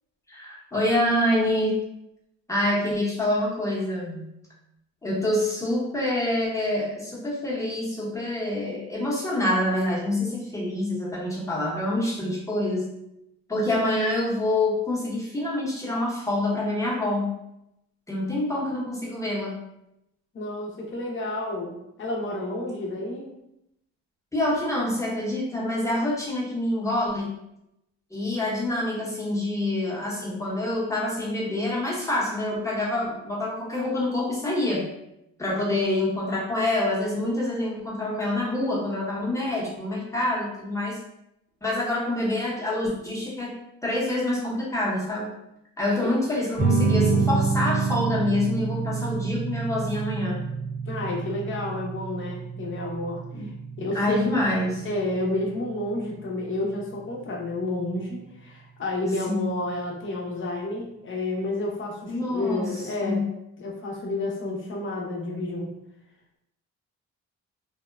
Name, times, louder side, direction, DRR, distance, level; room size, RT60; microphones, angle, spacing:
voice 1, 0.3-1.8 2.5-4.3 5.0-12.9 13.5-17.3 18.1-19.6 24.3-27.3 28.1-34.8 35.4-41.0 41.6-43.5 43.8-45.3 45.8-50.4 53.3-53.5 53.9-54.9 59.3-59.6 62.1-63.3, left 1 dB, 10° left, -5 dB, 0.9 m, -26 dB
voice 2, 20.3-23.3 46.0-46.1 50.9-53.5 53.8-54.3 54.8-63.3 63.6-65.7, left 2 dB, 40° left, -1 dB, 0.7 m, -30 dB
sound 1, 46.6-57.6, right 4 dB, 30° right, 0.8 m, -28 dB
2.8 x 2.1 x 2.3 m, 0.82 s
cardioid pair, 90°, 30 cm